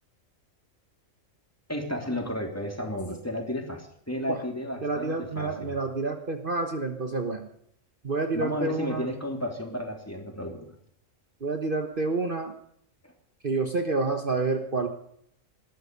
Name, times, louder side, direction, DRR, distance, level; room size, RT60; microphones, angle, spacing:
voice 1, 1.7-5.8 8.3-10.7, equal, 10° left, 3 dB, 3.1 m, -33 dB
voice 2, 4.8-7.5 8.0-9.0 11.4-12.5 13.4-14.9, right 3 dB, 40° right, 5 dB, 1.5 m, -28 dB
20.0 x 13.0 x 5.4 m, 0.69 s
omnidirectional pair, 1.4 m